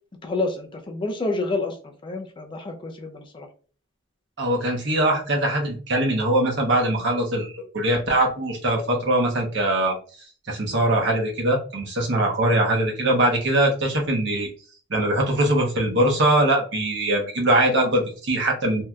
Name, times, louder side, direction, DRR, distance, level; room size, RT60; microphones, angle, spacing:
voice 1, 0.2-3.5, left 2 dB, 25° left, 0.4 m, -29 dB
voice 2, 4.4-10.0 10.5-14.5 14.9-18.8, right 1 dB, 60° right, 0.9 m, -22 dB
3.1 x 2.7 x 2.3 m
head